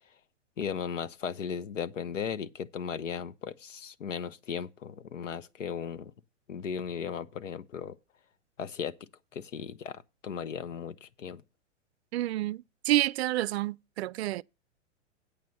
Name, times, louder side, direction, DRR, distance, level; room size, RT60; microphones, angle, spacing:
voice 1, 0.6-6.1 6.5-8.0 8.6-8.9 9.3-11.4, left 7 dB, 80° left, 0.9 m, -36 dB
voice 2, 12.1-14.4, right 15 dB, 60° right, 0.5 m, -29 dB
8.4 x 6.2 x 7.0 m
hypercardioid pair, 115°, 37 cm